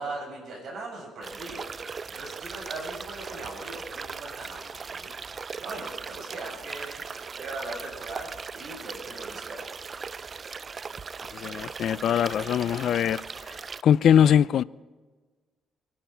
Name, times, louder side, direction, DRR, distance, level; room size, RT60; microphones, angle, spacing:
voice 1, 0.0-9.7, right 2 dB, 65° right, 7.0 m, -40 dB
sound 1, 1.2-13.8, right 5 dB, 40° right, 0.4 m, -39 dB
voice 2, 11.3-13.2 13.8-14.6, left 9 dB, 70° left, 0.4 m, -21 dB
25.5 x 11.5 x 4.5 m
cardioid pair, 90°, 0 cm